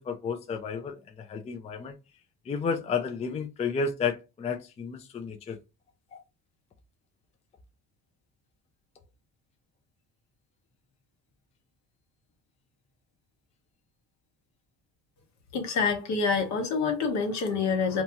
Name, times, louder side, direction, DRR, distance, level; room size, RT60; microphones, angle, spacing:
voice 1, 0.0-1.9 2.5-5.6 6.1-6.2, left 5 dB, 25° left, 0.4 m, -32 dB
voice 2, 15.5-18.0, left 5 dB, 70° left, 1.0 m, -27 dB
2.7 x 2.3 x 2.8 m
cardioid pair, 105°, 30 cm